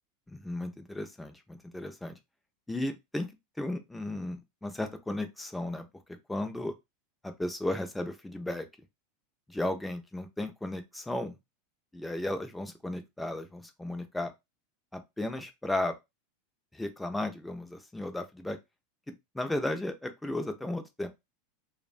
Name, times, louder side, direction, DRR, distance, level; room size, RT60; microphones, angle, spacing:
voice 1, 0.3-2.2 2.7-3.3 3.6-5.9 6.3-6.7 7.2-8.7 9.5-11.3 11.9-14.3 14.9-15.9 16.7-18.6 19.3-21.1, left 1 dB, 5° left, 0.4 m, -34 dB
2.9 x 2.1 x 2.4 m
supercardioid pair, 135°, 0 cm